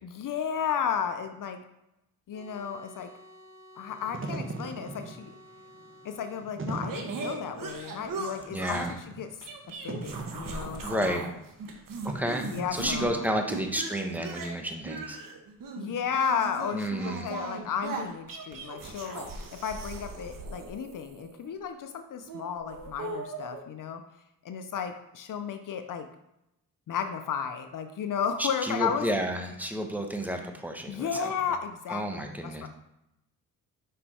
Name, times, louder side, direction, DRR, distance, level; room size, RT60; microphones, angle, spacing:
voice 1, 0.0-1.6 2.3-3.1 3.8-5.3 6.0-9.3 9.8-11.2 12.5-13.3 15.8-24.0 24.4-26.1 26.9-29.1 30.9-32.7, left 7 dB, 60° left, 7 dB, 0.7 m, -33 dB
sound 1, 2.3-6.5, left 1 dB, 35° left, 2.0 m, -53 dB
Wind / Fire, 3.9-13.4, right 3 dB, 35° right, 1.2 m, -40 dB
sound 2, 6.9-9.0 9.4-11.3 11.6-13.1 13.5-21.5 22.2-23.6, right 3 dB, 60° right, 1.2 m, -38 dB
voice 2, 8.5-9.0 10.8-11.3 12.0-15.2 16.7-17.3 28.4-31.3 31.9-32.7, equal, 5° right, 4 dB, 1.1 m, -31 dB
5.5 x 5.1 x 4.3 m, 0.85 s
cardioid pair, 75°, 37 cm